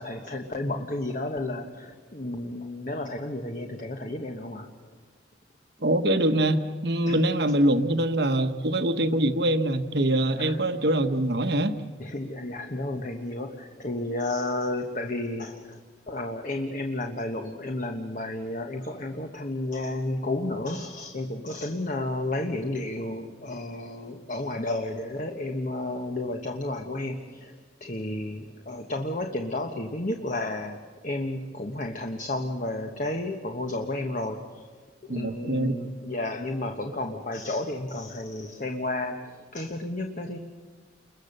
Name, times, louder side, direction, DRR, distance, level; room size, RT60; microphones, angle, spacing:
voice 1, 0.0-4.9 7.1-7.2 10.4-10.6 12.0-27.5 27.8-30.8 31.0-34.7 35.0-40.4, left 2 dB, 40° left, 4 dB, 1.2 m, -32 dB
voice 2, 5.8-11.8 35.1-35.8, right 1 dB, 60° right, 8 dB, 1.3 m, -24 dB
29.5 x 22.0 x 6.7 m, 1.5 s
head